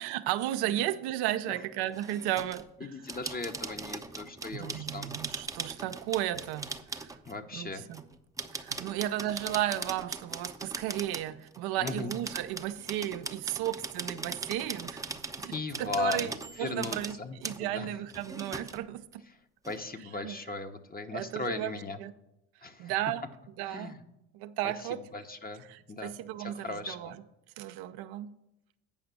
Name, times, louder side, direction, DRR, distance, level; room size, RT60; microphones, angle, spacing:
voice 1, 0.0-2.9 4.5-7.2 7.5-8.0 8.5-16.3 16.6-17.2 17.4-19.2 20.2-20.4 21.1-21.7 22.0-22.1 22.8-23.2 23.6-23.9 24.3-25.0 25.7-27.2 27.6-28.3, right 13 dB, 65° right, 0.6 m, -34 dB
sound 1, 1.9-2.7 3.1-7.4 7.9-11.6 11.9-17.2 17.4-17.6 18.1-18.8 19.1-19.2 19.6-19.8, right 3 dB, 10° right, 0.7 m, -40 dB
voice 2, 2.8-5.1 7.3-7.8 11.8-12.1 15.4-17.9 19.7-22.0 22.6-22.9 23.7-24.0 24.6-27.2, left 3 dB, 20° left, 1.0 m, -38 dB
8.8 x 5.8 x 6.9 m
hypercardioid pair, 65°, 41 cm